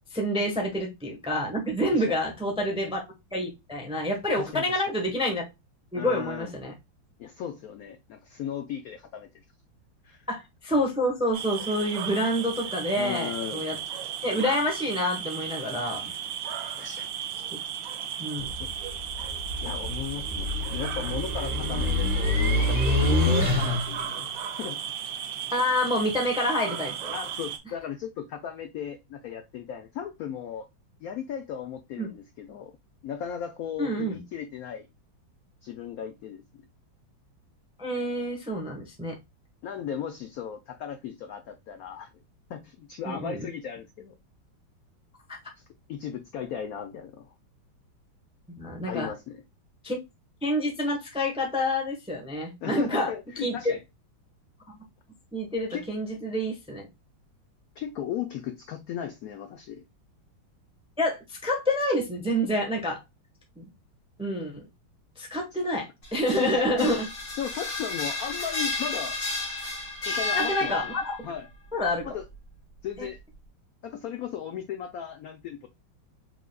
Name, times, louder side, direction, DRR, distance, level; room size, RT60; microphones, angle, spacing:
voice 1, 0.1-3.0 3.3-5.4 5.9-6.7 10.3-13.8 14.2-16.1 18.2-18.5 25.5-27.1 32.0-32.1 33.8-34.1 37.8-39.2 43.1-43.5 45.3-45.4 48.6-49.1 49.8-50.0 50.4-53.1 53.4-53.5 55.3-56.9 61.0-63.0 63.6-63.7 64.2-64.6 65.2-67.0 70.4-71.2 71.7-72.1, equal, 5° right, 0.8 m, -28 dB
voice 2, 4.4-4.8 5.9-6.5 7.2-9.3 10.0-10.3 12.9-13.6 16.8-17.1 18.6-18.7 19.6-24.3 24.6-24.8 27.1-30.7 31.0-32.7 33.0-34.9 35.6-36.7 39.6-42.1 42.5-44.1 45.6-45.7 45.9-47.3 48.9-49.4 52.6-53.8 55.7-55.9 57.8-59.8 66.4-67.0 67.4-69.2 70.1-70.9 71.2-71.5 72.0-72.3 72.8-73.2 73.8-75.7, left 9 dB, 85° left, 0.7 m, -36 dB
sound 1, 11.3-27.6, right 9 dB, 70° right, 1.2 m, -35 dB
sound 2, 18.4-24.1, left 1 dB, 25° right, 1.7 m, -26 dB
sound 3, 66.0-71.2, left 3 dB, 35° left, 2.1 m, -32 dB
4.8 x 3.8 x 2.3 m
omnidirectional pair, 2.2 m